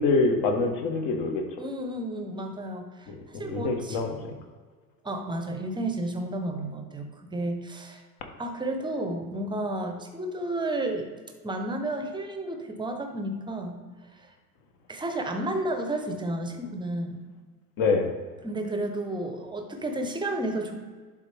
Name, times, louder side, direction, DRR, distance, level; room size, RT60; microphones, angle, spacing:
voice 1, 0.0-1.4 3.1-4.3 17.8-18.1, left 3 dB, 45° left, 3 dB, 1.5 m, -25 dB
voice 2, 1.6-4.0 5.0-8.0 8.4-11.1 11.4-13.8 14.1-14.3 14.9-17.2 18.4-20.7, right 1 dB, 10° right, 5 dB, 0.8 m, -32 dB
11.5 x 3.8 x 3.5 m, 1.5 s
hypercardioid pair, 90°, 50 cm